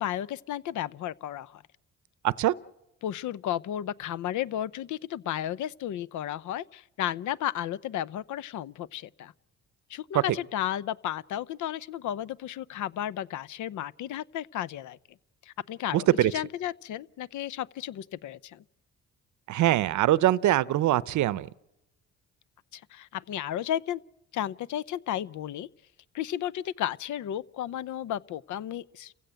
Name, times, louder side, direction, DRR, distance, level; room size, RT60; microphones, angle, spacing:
voice 1, 0.0-1.6 3.0-9.3 9.9-15.0 15.4-18.6 22.7-24.0 24.3-25.7 26.1-29.1, left 11 dB, 75° left, 0.8 m, -33 dB
voice 2, 15.9-16.3 19.5-21.5, right 14 dB, 70° right, 0.7 m, -23 dB
29.5 x 16.0 x 7.8 m
cardioid pair, 90°, 30 cm